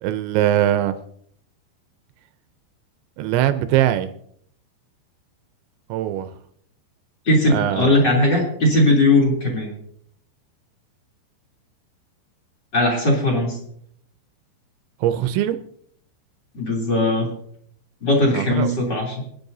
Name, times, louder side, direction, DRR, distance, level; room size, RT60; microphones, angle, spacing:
voice 1, 0.0-0.9 3.2-4.1 5.9-6.3 7.5-7.9 15.0-15.6 18.3-18.7, right 12 dB, 80° right, 10 dB, 2.9 m, -21 dB
voice 2, 7.2-9.7 12.7-13.6 16.5-17.3 18.0-19.2, left 1 dB, 25° left, -2 dB, 3.1 m, -19 dB
25.5 x 9.9 x 2.7 m, 0.66 s
omnidirectional pair, 5.4 m